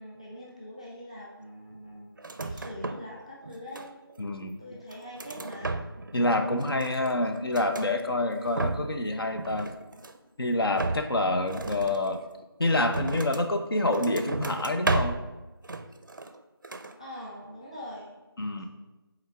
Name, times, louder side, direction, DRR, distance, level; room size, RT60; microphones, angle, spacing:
voice 1, 0.0-4.0 4.6-5.8 17.0-18.2 18.6-18.7, equal, 15° left, -5 dB, 0.5 m, -43 dB
sound 1, 2.2-3.2 3.4-4.2 4.7-6.2 6.5-7.9 8.3-9.0 9.3-10.3 10.7-13.5 13.9-15.3 15.6-16.4 16.6-17.0, right 3 dB, 50° right, 0.4 m, -34 dB
voice 2, 4.2-4.6 6.1-9.7 10.4-12.2 12.6-15.1 18.4-18.7, left 2 dB, 70° left, 6 dB, 0.7 m, -27 dB
5.6 x 4.0 x 4.6 m, 1.1 s
figure-of-eight pair, 175°, 13 cm